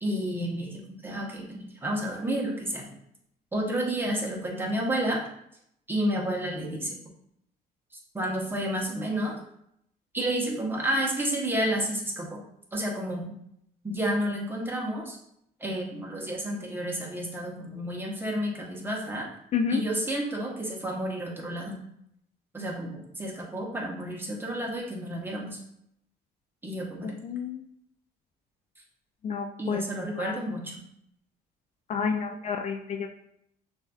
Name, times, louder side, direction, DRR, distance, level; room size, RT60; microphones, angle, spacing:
voice 1, 0.0-2.9 3.5-5.2 5.9-6.9 8.1-9.4 10.1-12.4 12.7-13.3 13.8-15.2 15.6-19.3 19.7-21.8 22.5-25.6 26.6-27.1 29.6-30.8, right 1 dB, 10° right, -2 dB, 1.0 m, -30 dB
voice 2, 19.5-19.8 27.0-27.6 29.2-29.8 30.1-30.4 31.9-33.1, left 6 dB, 40° left, 4 dB, 0.3 m, -30 dB
6.2 x 2.6 x 2.4 m, 0.74 s
cardioid pair, 110°, 17 cm